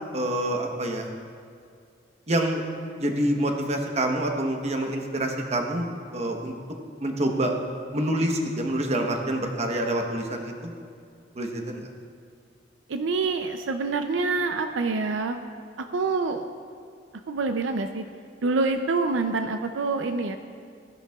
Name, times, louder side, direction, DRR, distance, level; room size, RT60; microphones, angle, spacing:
voice 1, 0.1-1.1 2.3-2.6 3.0-5.8 6.1-6.5 7.0-7.5 7.9-10.7 11.4-11.9, right 1 dB, 35° right, 2 dB, 1.0 m, -26 dB
voice 2, 12.9-15.4 15.9-16.5 17.3-18.0 18.4-20.4, right 3 dB, 85° right, 7 dB, 0.5 m, -26 dB
16.5 x 10.5 x 2.4 m, 2.2 s
head